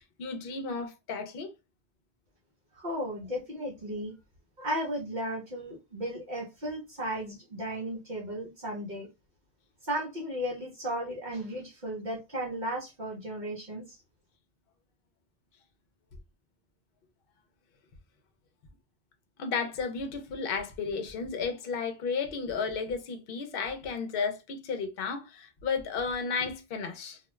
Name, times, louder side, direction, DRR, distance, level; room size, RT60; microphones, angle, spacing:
voice 1, 0.0-1.5 19.4-27.2, left 5 dB, 60° left, 0.8 m, -33 dB
voice 2, 2.7-4.2 4.6-9.1 9.8-14.0, equal, 50° right, 0.9 m, -35 dB
2.4 x 2.2 x 3.0 m
omnidirectional pair, 1.1 m